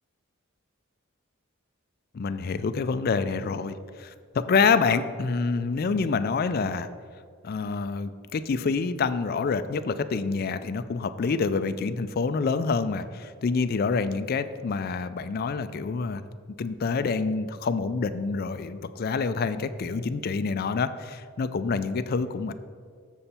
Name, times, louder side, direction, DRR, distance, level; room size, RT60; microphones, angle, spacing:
voice 1, 2.1-4.1 4.4-6.9 7.4-16.2 16.6-22.5, left 4 dB, 45° left, 11 dB, 0.4 m, -27 dB
7.1 x 6.7 x 4.3 m, 2.1 s
head